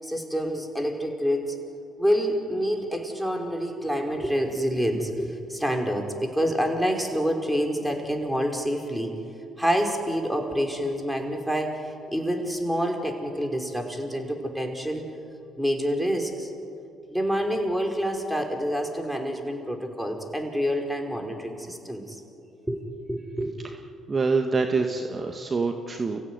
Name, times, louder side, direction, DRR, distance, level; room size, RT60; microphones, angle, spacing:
voice 1, 0.0-1.6 2.0-9.1 9.6-15.0 15.6-16.5 17.1-22.2 22.7-22.8 23.1-23.5 24.8-24.9, equal, ahead, 2 dB, 5.6 m, -27 dB
voice 2, 24.1-26.2, right 4 dB, 35° right, 4 dB, 1.7 m, -25 dB
29.5 x 16.5 x 9.7 m, 2.6 s
hypercardioid pair, 55°, 0 cm